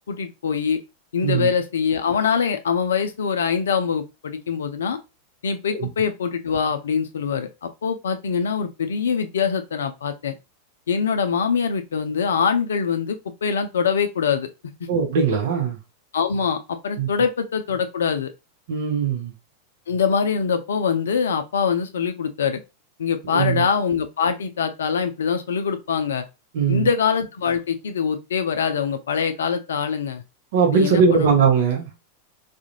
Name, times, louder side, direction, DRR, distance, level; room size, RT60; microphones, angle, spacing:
voice 1, 0.1-0.8 1.1-5.0 5.4-10.4 10.9-14.7 16.1-18.3 19.9-22.6 23.0-26.2 26.7-30.2 30.7-31.3, left 6 dB, 65° left, 0.4 m, -23 dB
voice 2, 14.9-15.8 17.0-17.1 18.7-19.3 23.2-23.6 26.5-26.9 30.5-31.9, right 6 dB, 55° right, 0.6 m, -20 dB
2.4 x 2.1 x 2.9 m
figure-of-eight pair, 90°, 0 cm